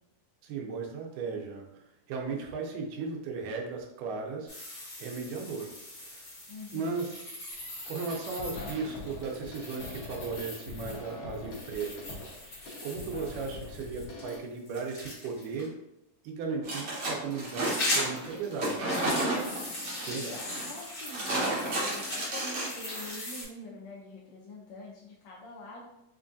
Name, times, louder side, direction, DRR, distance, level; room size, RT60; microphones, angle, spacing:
voice 1, 0.4-1.8 2.1-4.5 5.0-5.7 6.1-6.2 6.7-7.1 7.9-12.1 12.8-15.8 16.2-18.8 20.1-20.3, right 4 dB, 90° right, 1 dB, 2.2 m, -36 dB
sound 1, 4.5-15.6 17.2-23.4, left 1 dB, 45° left, 1.2 m, -40 dB
voice 2, 6.5-7.1 20.1-25.9, left 2 dB, 85° left, -3 dB, 1.5 m, -45 dB
sound 2, 7.5-7.8 8.1-14.4, left 3 dB, 65° left, 1.6 m, -43 dB
sound 3, 16.6-23.1, right 1 dB, 65° right, 1.0 m, -32 dB
5.2 x 2.3 x 2.5 m, 0.85 s
omnidirectional pair, 3.6 m